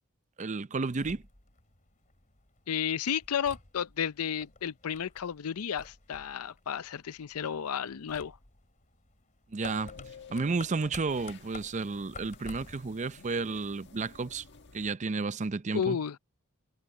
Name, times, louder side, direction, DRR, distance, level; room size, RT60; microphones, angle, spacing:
voice 1, 0.4-1.2 9.5-9.9 10.3-14.5 14.7-16.0, right 4 dB, 35° right, 0.5 m, -32 dB
sound 1, 0.8-13.0, left 4 dB, 35° left, 3.0 m, -52 dB
voice 2, 2.7-8.4 15.7-16.2, left 8 dB, 90° left, 0.5 m, -32 dB
sound 2, 9.6-14.9, left 5 dB, 55° left, 1.5 m, -52 dB
head